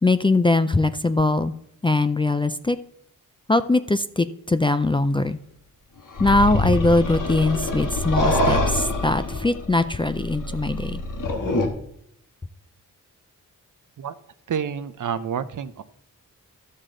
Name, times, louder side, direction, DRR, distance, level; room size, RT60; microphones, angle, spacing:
voice 1, 0.0-1.5 1.8-2.8 3.5-5.4 6.2-11.0, left 2 dB, 15° left, 11 dB, 0.3 m, -21 dB
sound 1, 6.2-11.7, left 2 dB, 65° left, 1.4 m, -25 dB
voice 2, 14.5-15.8, right 7 dB, 60° right, 13 dB, 0.6 m, -28 dB
12.5 x 6.5 x 3.8 m, 0.74 s
wide cardioid pair, 100°, 34 cm